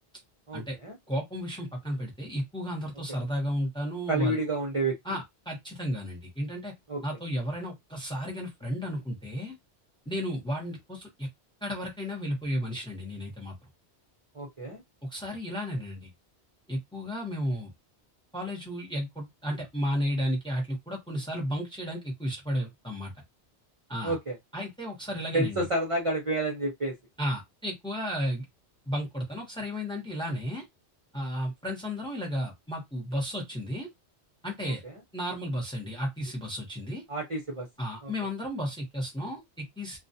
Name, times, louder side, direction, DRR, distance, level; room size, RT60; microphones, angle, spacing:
voice 1, 0.5-1.0 4.1-4.9 6.9-7.0 14.3-14.8 24.0-24.4 25.3-26.9 34.6-34.9 37.1-37.7 38.0-38.1, right 2 dB, 35° right, 0.6 m, -30 dB
voice 2, 1.1-4.4 5.0-6.7 7.0-9.5 10.1-11.3 11.6-13.5 15.0-16.1 16.7-17.7 18.3-23.1 23.9-24.2 24.5-25.7 27.2-28.4 28.9-30.6 31.1-33.9 34.4-34.8 35.1-37.0 37.8-40.0, equal, 5° left, 0.7 m, -33 dB
2.3 x 2.3 x 2.6 m
omnidirectional pair, 1.2 m